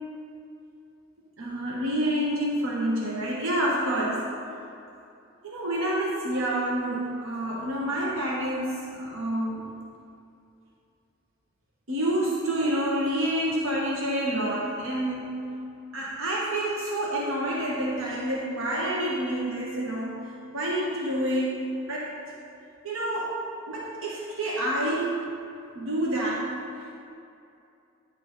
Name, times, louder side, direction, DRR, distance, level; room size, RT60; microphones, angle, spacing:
voice 1, 1.4-4.3 5.4-9.7 11.9-15.5 15.9-22.1 22.8-25.2 25.8-26.5, right 1 dB, 90° right, -4 dB, 1.1 m, -28 dB
9.9 x 4.0 x 5.9 m, 2.6 s
head